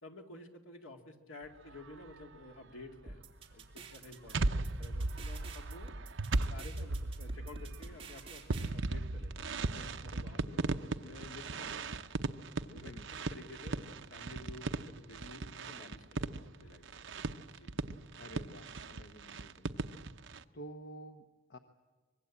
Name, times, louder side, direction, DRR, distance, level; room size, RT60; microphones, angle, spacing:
voice 1, 0.0-3.2 3.5-5.9 6.5-12.0 12.7-17.1 17.5-17.8 19.7-19.8, left 2 dB, 75° left, 4 dB, 2.6 m, -52 dB
sound 1, 1.7-2.2 3.5-20.4, right 2 dB, 60° right, 0.8 m, -37 dB
sound 2, 3.1-8.7, right 3 dB, 25° right, 2.7 m, -49 dB
voice 2, 18.2-19.7 20.5-21.6, right 1 dB, 50° left, 7 dB, 1.1 m, -50 dB
24.5 x 21.0 x 8.6 m, 1.3 s
head